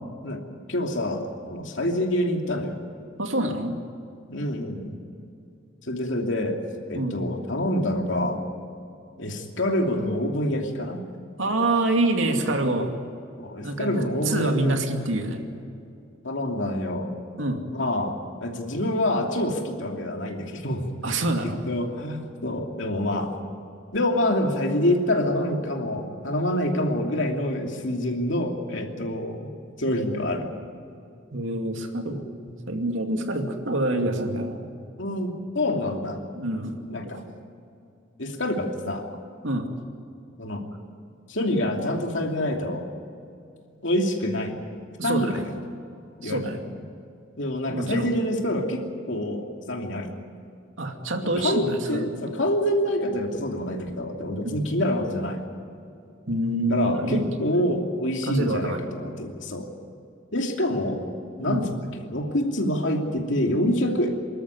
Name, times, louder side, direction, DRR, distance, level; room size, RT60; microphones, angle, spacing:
voice 1, 0.7-2.9 4.3-5.0 5.8-6.6 6.9-8.4 9.2-11.0 13.4-14.7 16.2-17.1 17.7-20.9 21.7-23.3 23.9-29.5 29.8-30.5 32.6-32.8 35.0-36.2 36.9-37.2 38.2-39.0 40.4-40.6 41.3-42.9 43.8-44.6 45.0-45.4 46.2-46.7 47.4-49.4 49.7-50.1 51.4-55.4 56.7-59.7 60.3-61.0 61.4-61.6 62.1-64.1, left 1 dB, 70° left, 2 dB, 2.9 m, -26 dB
voice 2, 3.2-3.8 6.9-7.2 11.4-12.9 13.6-15.5 17.4-17.7 21.0-21.6 31.3-32.3 32.7-34.7 36.3-37.2 39.4-39.7 45.0-45.4 46.2-46.6 47.7-48.1 50.8-52.2 54.4-54.6 56.3-57.3 58.3-58.8 61.4-61.7, right 2 dB, 85° right, 4 dB, 2.5 m, -26 dB
25.0 x 13.5 x 9.6 m, 2.6 s
head